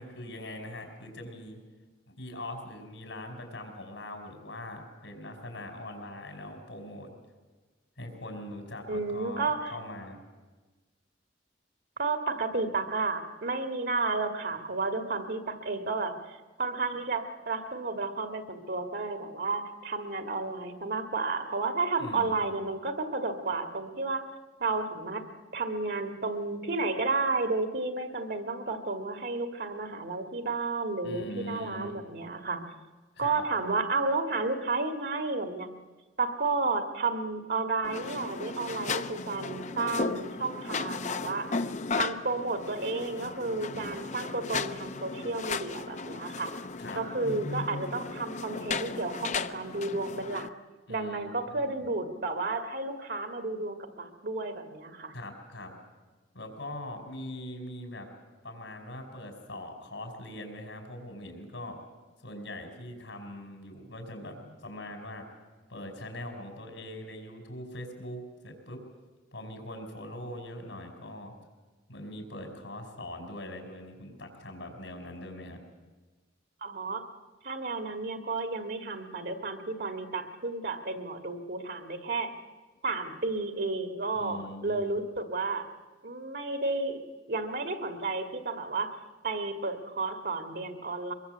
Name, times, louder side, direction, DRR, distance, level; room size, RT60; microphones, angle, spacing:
voice 1, 0.0-1.6 2.1-7.1 8.0-10.2 22.0-22.5 31.0-32.0 33.2-33.4 43.7-44.0 46.8-47.0 50.9-51.9 55.1-55.8 56.3-58.1 58.4-61.8 62.2-65.3 65.7-68.8 69.3-71.3 71.9-75.6 84.2-84.9, left 1 dB, 80° left, 4 dB, 5.2 m, -42 dB
voice 2, 8.9-9.7 12.0-24.3 24.6-25.3 25.5-32.7 33.2-35.7 36.2-41.5 42.0-46.5 47.0-50.5 50.9-55.1 76.6-77.1 77.4-82.3 82.8-85.7 86.0-87.0 87.3-88.9 89.2-91.1, right 3 dB, 55° right, 6 dB, 1.8 m, -32 dB
sound 1, 37.8-50.5, left 4 dB, 40° left, 0.7 m, -35 dB
24.0 x 22.5 x 8.0 m, 1.3 s
head